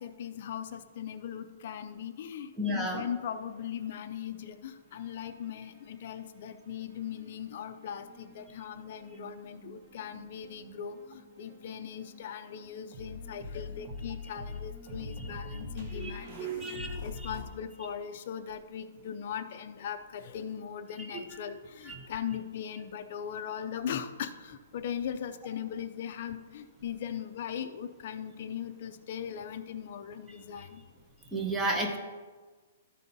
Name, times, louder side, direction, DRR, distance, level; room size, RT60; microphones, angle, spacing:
voice 1, 0.0-30.8, left 8 dB, 40° left, 7 dB, 0.5 m, -39 dB
voice 2, 2.6-3.0 15.9-17.0 21.9-22.0 31.3-32.0, right 1 dB, 5° right, 2 dB, 0.7 m, -32 dB
sound 1, 3.0-4.6 4.9-6.3 7.0-17.4, left 3 dB, 25° right, 1.0 m, -45 dB
12.5 x 4.2 x 5.3 m, 1.4 s
hypercardioid pair, 175°, 0 cm